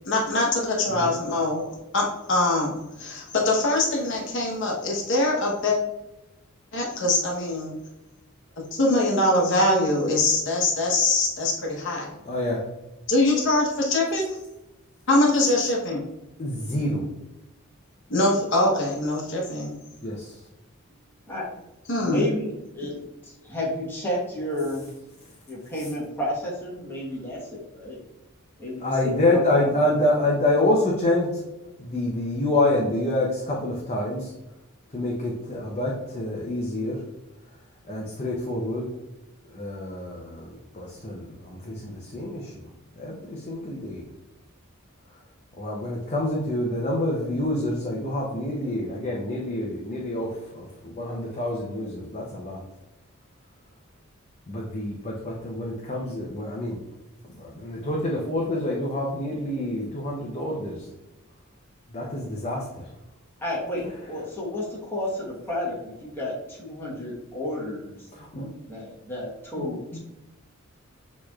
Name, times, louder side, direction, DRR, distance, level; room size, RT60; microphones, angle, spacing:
voice 1, 0.0-1.6 1.9-5.8 6.7-7.7 8.7-12.1 13.1-14.3 15.1-16.0 18.1-19.8 21.9-22.2, left 2 dB, 55° left, -2 dB, 1.0 m, -23 dB
voice 2, 12.2-12.6 16.4-17.1 20.0-20.3 28.8-31.3 31.8-34.3 34.9-37.0 37.9-38.9 39.5-40.5 40.7-42.5 43.0-44.0 45.6-52.6 54.5-56.8 57.4-60.8 61.9-62.6 68.2-68.5 69.6-69.7 69.9-70.0, left 1 dB, 30° left, -3 dB, 0.6 m, -27 dB
voice 3, 22.0-23.0 23.2-24.8 25.5-28.0 28.6-30.0 63.4-68.1 68.7-70.0, left 1 dB, 10° left, -6 dB, 1.1 m, -31 dB
6.6 x 3.1 x 2.3 m, 0.97 s
head